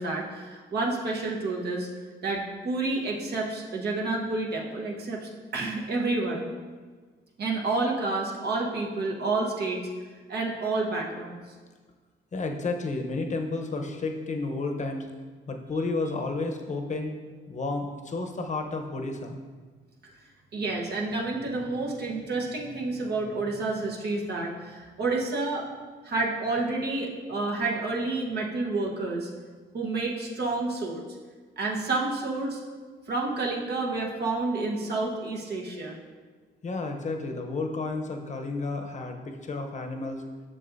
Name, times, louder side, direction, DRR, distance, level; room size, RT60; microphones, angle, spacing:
voice 1, 0.0-1.9 2.2-6.5 7.4-9.9 10.3-11.4 20.5-25.7 26.0-29.3 29.7-31.0 31.6-32.6 33.1-36.0, right 3 dB, 55° right, -1 dB, 1.1 m, -29 dB
voice 2, 12.3-15.1 15.5-17.2 17.5-19.4 36.6-40.2, left 3 dB, 35° left, 4 dB, 0.8 m, -31 dB
7.5 x 6.4 x 2.6 m, 1.4 s
cardioid pair, 90°, 20 cm